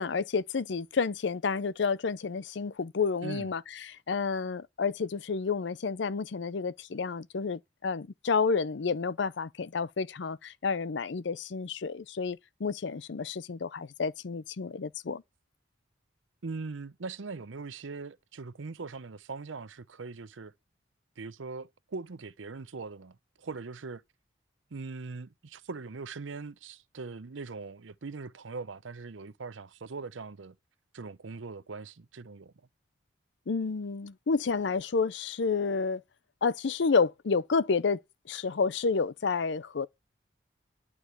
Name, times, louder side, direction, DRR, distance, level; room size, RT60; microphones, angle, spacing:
voice 1, 0.0-15.2 33.5-36.0 36.4-38.0 38.3-39.9, left 5 dB, 70° left, 0.5 m, -30 dB
voice 2, 16.4-20.5 21.2-24.0 24.7-30.6 30.9-32.5, right 4 dB, 85° right, 0.7 m, -41 dB
11.5 x 4.8 x 8.2 m
head